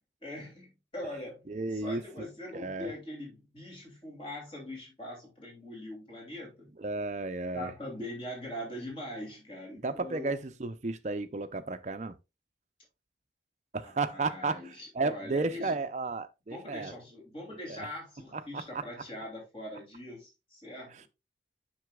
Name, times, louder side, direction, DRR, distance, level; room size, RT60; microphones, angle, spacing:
voice 1, 0.2-6.7 7.5-10.4 13.8-15.8 16.5-21.1, left 1 dB, 30° left, 2.8 m, -42 dB
voice 2, 1.5-2.0 2.5-2.9 6.8-7.7 9.8-12.2 13.7-16.9 17.5-17.9 18.3-18.8, right 3 dB, 40° right, 0.5 m, -33 dB
7.7 x 6.0 x 2.3 m
head